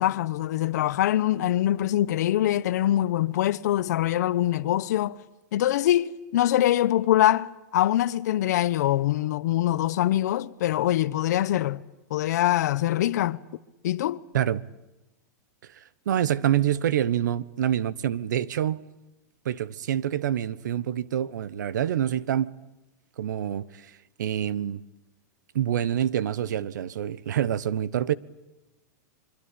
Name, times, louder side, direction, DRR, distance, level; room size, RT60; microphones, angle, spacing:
voice 1, 0.0-5.2 5.5-11.8 12.1-13.4 13.8-14.2, left 13 dB, 70° left, 1.0 m, -24 dB
voice 2, 15.7-18.8 19.4-22.5 23.2-23.9 24.2-24.8 25.5-28.1, right 10 dB, 85° right, 1.2 m, -26 dB
25.0 x 24.5 x 8.6 m
supercardioid pair, 155°, 10 cm